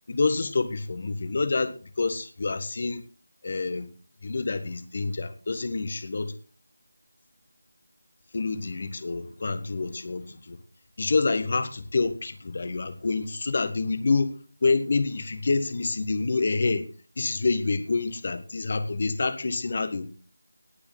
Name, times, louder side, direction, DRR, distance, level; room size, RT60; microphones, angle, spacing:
voice 1, 0.1-3.0 3.4-3.9 4.2-6.3 8.3-10.6 11.0-16.9 17.2-20.1, left 3 dB, 40° left, 1.5 m, -27 dB
18.5 x 8.7 x 3.6 m
figure-of-eight pair, 165°, 0 cm